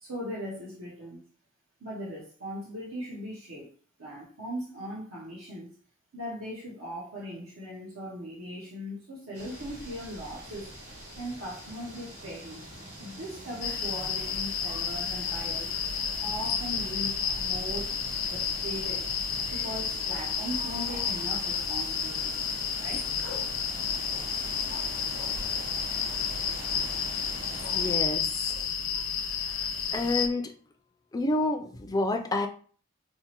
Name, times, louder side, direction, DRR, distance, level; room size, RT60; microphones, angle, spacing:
voice 1, 0.0-1.2 1.8-3.7 4.0-5.7 6.1-10.7 11.2-12.6 13.0-15.7 16.2-17.9 18.3-19.1 19.5-22.4 22.8-23.1, equal, 75° right, -5 dB, 0.8 m, -39 dB
sound 1, 9.3-28.0, right 1 dB, 40° right, 1.1 m, -43 dB
sound 2, 13.6-30.3, left 7 dB, 70° left, 0.5 m, -31 dB
voice 2, 27.7-28.5 29.9-30.5 31.1-32.5, left 2 dB, 20° left, 5 dB, 0.3 m, -28 dB
4.5 x 2.0 x 2.9 m, 0.43 s
head